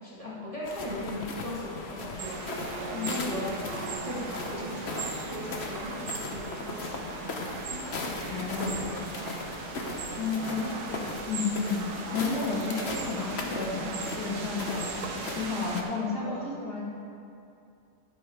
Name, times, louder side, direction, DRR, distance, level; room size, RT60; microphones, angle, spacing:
voice 1, 0.0-3.6 4.0-9.6 13.0-13.3 16.2-16.8, equal, 20° right, -7 dB, 1.9 m, -39 dB
sound 1, 0.6-15.8, left 3 dB, 45° left, 1.1 m, -38 dB
sound 2, 2.2-15.8, right 4 dB, 80° right, 1.5 m, -38 dB
voice 2, 8.3-8.7 10.2-11.0 11.3-11.8 12.1-14.8 15.4-16.8, left 4 dB, 80° left, -4 dB, 2.5 m, -32 dB
11.5 x 10.5 x 3.6 m, 2.6 s
omnidirectional pair, 1.7 m